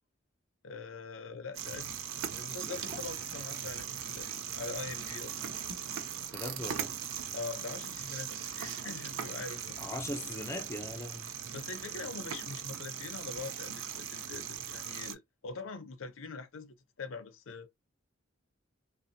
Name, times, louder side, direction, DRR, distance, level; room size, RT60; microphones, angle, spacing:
voice 1, 0.6-1.9 2.2-3.9 4.1-5.4 7.3-9.8 11.5-17.7, left 4 dB, 85° left, 0.6 m, -43 dB
sound 1, 1.5-15.1, right 8 dB, 85° right, 0.4 m, -39 dB
sound 2, 2.5-3.8 4.2-4.3 5.5-6.7 8.5-8.9, equal, 45° right, 0.8 m, -51 dB
voice 2, 6.3-6.9 9.8-11.3, left 1 dB, 15° left, 0.3 m, -39 dB
2.6 x 2.0 x 2.6 m
head